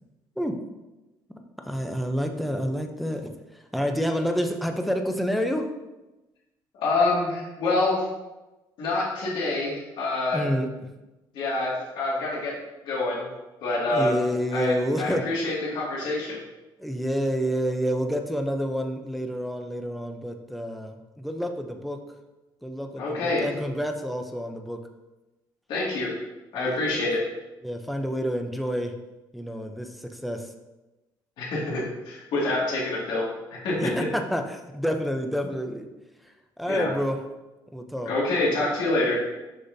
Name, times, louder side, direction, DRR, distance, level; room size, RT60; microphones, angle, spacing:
voice 1, 1.6-5.7 10.3-10.9 13.9-15.3 16.8-22.0 22.6-24.8 26.5-27.1 27.6-28.9 29.3-30.5 33.8-35.9 36.2-37.2 37.7-38.1, equal, ahead, 4 dB, 0.6 m, -29 dB
voice 2, 6.8-8.1 8.8-10.5 11.3-12.5 12.8-13.3 13.6-14.2 14.5-16.4 23.0-23.4 25.7-26.1 26.5-27.2 31.4-33.2 33.5-33.8 36.7-36.9 38.1-39.2, left 2 dB, 75° left, -5 dB, 2.2 m, -26 dB
6.7 x 5.7 x 2.7 m, 1.1 s
cardioid pair, 125°, 8 cm